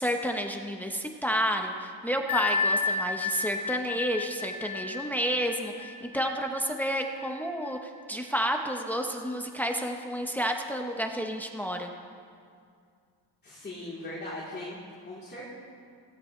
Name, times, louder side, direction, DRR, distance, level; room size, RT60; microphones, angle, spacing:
voice 1, 0.0-11.9, equal, 5° left, 3 dB, 1.0 m, -30 dB
Bell, 2.3-7.7, left 4 dB, 40° left, 1.2 m, -32 dB
voice 2, 13.4-14.8 15.0-15.4, left 1 dB, 25° left, -8 dB, 3.7 m, -39 dB
20.5 x 17.0 x 3.3 m, 2.2 s
cardioid pair, 105°, 44 cm